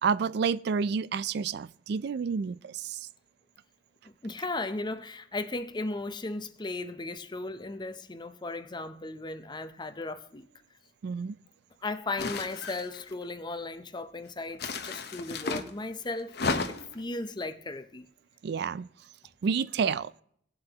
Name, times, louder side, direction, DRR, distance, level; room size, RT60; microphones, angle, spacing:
voice 1, 0.0-3.0 11.0-11.4 18.4-18.9 19.4-20.1, right 6 dB, 65° right, 0.3 m, -29 dB
voice 2, 4.2-10.5 11.8-18.1, left 2 dB, 25° left, 0.6 m, -36 dB
sound 1, 12.2-13.1 14.5-15.7 16.3-17.0, left 3 dB, 60° left, 0.9 m, -33 dB
18.5 x 7.6 x 2.9 m
head